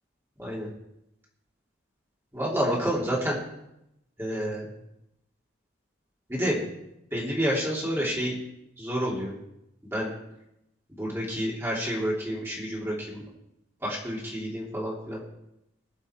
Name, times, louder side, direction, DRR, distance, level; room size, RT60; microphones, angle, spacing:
voice 1, 2.3-3.4 4.2-4.7 6.3-6.6 7.1-8.4 8.8-9.3 9.9-10.1 10.9-13.2 13.8-15.2, equal, 10° right, -5 dB, 2.8 m, -29 dB
21.0 x 7.2 x 4.5 m, 0.85 s
head